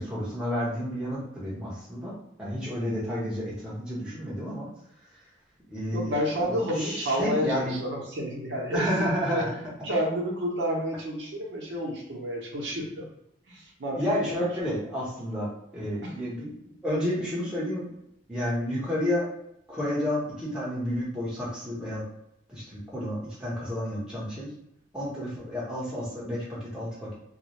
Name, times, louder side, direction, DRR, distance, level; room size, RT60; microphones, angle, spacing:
voice 1, 0.0-4.7 5.7-6.1 6.5-7.7 8.7-9.4 13.9-15.5 15.7-17.9 18.3-19.3 19.7-22.0 22.5-24.5 24.9-27.1, equal, 5° right, -7 dB, 0.8 m, -30 dB
voice 2, 5.9-13.1 13.5-14.5 16.0-16.2, equal, 75° right, -1 dB, 0.7 m, -30 dB
2.4 x 2.0 x 2.9 m, 0.78 s
head